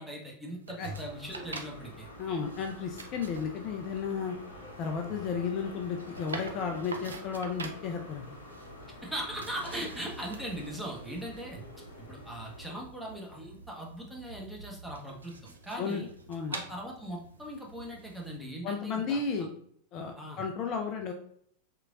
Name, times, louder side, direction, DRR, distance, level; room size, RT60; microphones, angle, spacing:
voice 1, 0.0-2.1 8.9-11.6 12.0-15.4 15.6-16.1 16.5-19.2 20.2-20.4, equal, ahead, -3 dB, 0.9 m, -40 dB
sound 1, 0.6-18.4, right 3 dB, 75° right, 0.4 m, -47 dB
sound 2, 0.8-12.7, left 1 dB, 65° left, 0.8 m, -48 dB
voice 2, 2.2-4.4 4.8-8.4 15.8-16.5 18.6-19.5 19.9-21.1, left 5 dB, 35° left, 4 dB, 0.4 m, -33 dB
3.7 x 3.3 x 2.4 m, 0.65 s
figure-of-eight pair, 90°, 0 cm